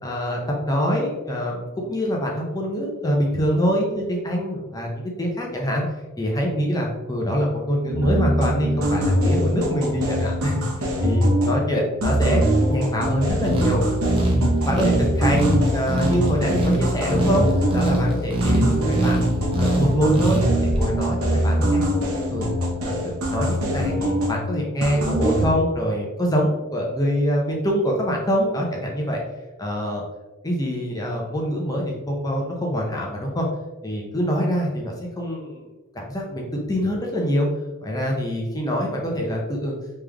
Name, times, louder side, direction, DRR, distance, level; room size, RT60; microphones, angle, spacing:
voice 1, 0.0-5.8 6.2-12.4 12.7-13.8 14.2-17.4 17.7-21.8 22.3-22.5 22.8-29.2 29.6-30.0 30.4-33.5 33.8-37.5 37.8-39.8, equal, 15° left, -1 dB, 0.7 m, -25 dB
sound 1, 7.9-11.7 12.0-18.1 18.4-24.5 24.8-25.5, right 1 dB, 70° right, 1.0 m, -23 dB
sound 2, 13.3-20.8, right 1 dB, 25° right, 0.7 m, -24 dB
3.6 x 3.3 x 3.4 m, 1.1 s
head